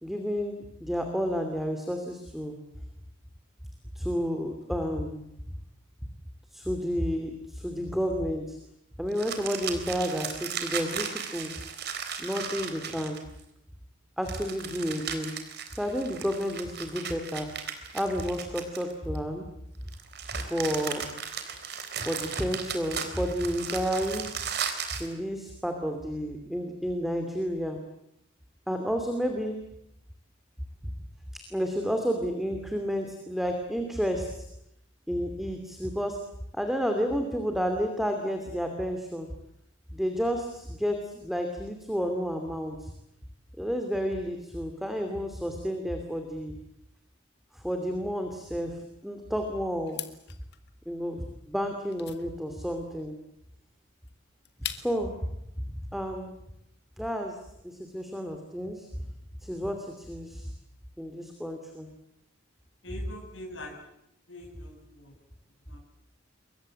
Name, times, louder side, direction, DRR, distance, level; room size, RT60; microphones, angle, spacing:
voice 1, 0.0-2.6 3.9-5.2 6.5-8.6 9.0-11.5 12.2-13.2 14.2-15.3 15.8-17.5 17.9-19.5 20.3-21.1 22.0-24.4 25.0-27.8 28.7-29.6 31.5-34.5 35.1-36.2 36.5-39.3 39.9-42.9 43.6-46.5 47.5-50.0 50.9-53.2 54.7-55.1 55.9-56.3 57.0-57.4 57.6-58.9 59.4-60.5 61.0-61.9, equal, ahead, 5 dB, 2.8 m, -31 dB
sound 1, 9.1-13.4 14.2-19.2 19.9-25.1, right 7 dB, 55° right, 3.9 m, -36 dB
sound 2, 49.9-55.1, left 11 dB, 55° left, 2.1 m, -42 dB
voice 2, 62.8-63.7 64.3-65.0 65.7-65.8, left 1 dB, 80° left, 2 dB, 7.4 m, -43 dB
28.5 x 23.5 x 7.8 m, 0.79 s
head